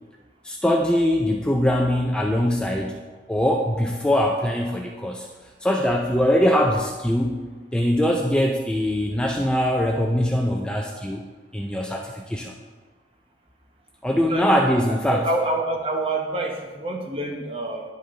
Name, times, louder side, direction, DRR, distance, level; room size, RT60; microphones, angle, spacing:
voice 1, 0.4-3.0 3.3-5.3 5.6-7.4 7.7-11.2 11.5-12.5 14.0-15.3, equal, 5° left, 0 dB, 0.4 m, -22 dB
voice 2, 14.2-17.8, right 2 dB, 30° right, 1 dB, 1.0 m, -27 dB
10.0 x 5.4 x 3.8 m, 1.3 s
head